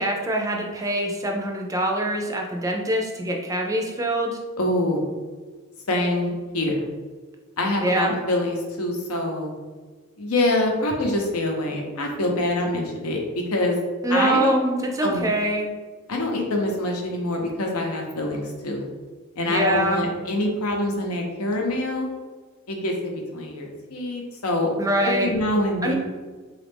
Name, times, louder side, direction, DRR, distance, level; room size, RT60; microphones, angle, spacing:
voice 1, 0.0-4.4 7.8-8.2 14.0-15.7 19.5-20.1 24.8-25.3 25.8-26.0, right 1 dB, 15° right, 2 dB, 0.4 m, -24 dB
voice 2, 4.6-5.1 5.9-6.9 7.6-9.5 10.2-13.8 14.1-14.5 15.0-15.2 16.1-18.9 19.4-22.1 22.7-24.7 25.0-26.0, left 1 dB, 85° left, 1 dB, 0.8 m, -25 dB
4.1 x 2.4 x 3.4 m, 1.4 s
head